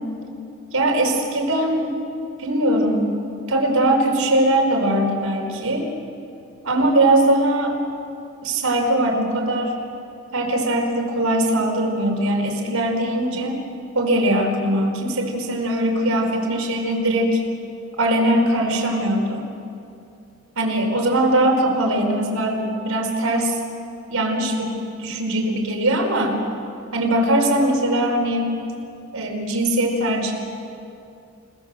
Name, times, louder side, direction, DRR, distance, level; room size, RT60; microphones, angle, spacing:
voice 1, 0.7-2.0 2.4-3.1 3.5-5.9 6.6-7.8 8.4-9.7 10.3-13.6 13.9-17.4 18.0-19.5 20.6-23.6 24.1-26.4 26.9-28.5 29.1-30.3, right 1 dB, 85° right, 2 dB, 4.8 m, -21 dB
30.0 x 19.5 x 7.6 m, 2.6 s
head